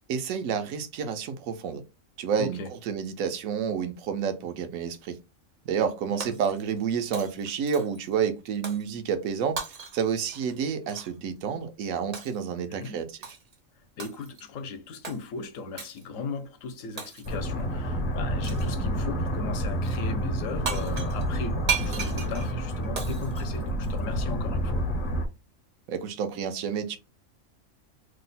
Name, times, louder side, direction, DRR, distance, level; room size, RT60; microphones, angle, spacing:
voice 1, 0.1-1.8 2.2-2.6 2.9-5.2 5.7-9.6 9.9-13.1 25.9-27.0, right 7 dB, 90° right, 1.0 m, -29 dB
voice 2, 2.4-2.7 6.1-6.4 12.6-13.0 14.0-24.8, left 4 dB, 75° left, 1.0 m, -37 dB
Shatter, 6.2-6.9 7.1-8.1 8.6-8.9 9.6-11.1 12.1-12.5 13.2-13.6 14.0-14.5 15.0-15.2 15.8-16.1 17.0-17.5 18.4-18.8 20.4-20.5 20.7-24.2, right 6 dB, 55° right, 0.4 m, -36 dB
sound 1, 17.2-25.3, equal, 50° left, 0.7 m, -29 dB
3.0 x 2.0 x 3.9 m
omnidirectional pair, 1.4 m